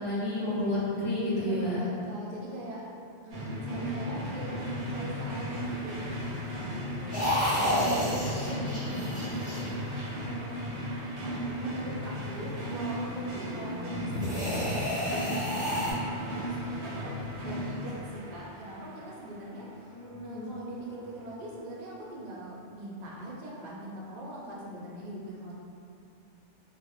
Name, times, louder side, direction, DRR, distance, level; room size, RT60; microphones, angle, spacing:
voice 1, 0.0-1.8 13.5-13.6 19.9-20.5, left 1 dB, 70° left, -10 dB, 0.9 m, -31 dB
voice 2, 1.3-2.8 3.2-6.4 6.7-8.1 8.4-9.2 10.2-10.7 11.6-17.1 17.4-19.9 20.2-25.5, right 1 dB, 55° right, -5 dB, 0.5 m, -42 dB
sound 1, 3.3-19.1, equal, 85° right, 0.9 m, -35 dB
sound 2, 7.1-22.4, left 4 dB, 40° left, 0.6 m, -48 dB
sound 3, 7.1-10.3 14.1-15.9, equal, 10° right, 0.6 m, -30 dB
2.8 x 2.0 x 2.3 m, 2.5 s
omnidirectional pair, 1.2 m